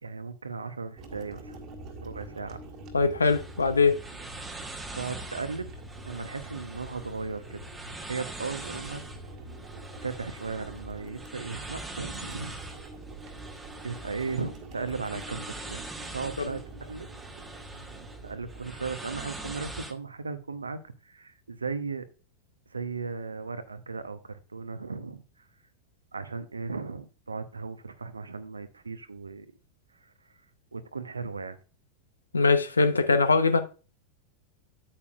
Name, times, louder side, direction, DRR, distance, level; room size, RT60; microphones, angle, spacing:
voice 1, 0.0-1.6 2.0-2.6 4.9-5.7 6.0-7.6 8.1-9.0 10.0-12.6 13.8-15.8 16.1-17.1 18.2-20.8 21.0-22.1 22.7-25.2 26.1-29.5 30.7-31.6, right 4 dB, 75° right, 0.8 m, -36 dB
sound 1, 1.0-19.8, right 2 dB, 35° right, 1.6 m, -45 dB
voice 2, 2.9-4.0 16.4-16.5 32.3-33.6, left 4 dB, 75° left, 0.8 m, -22 dB
Heavy Breathing, 3.2-19.9, right 2 dB, 10° right, 1.1 m, -44 dB
8.7 x 8.5 x 2.4 m
figure-of-eight pair, 90°, 0 cm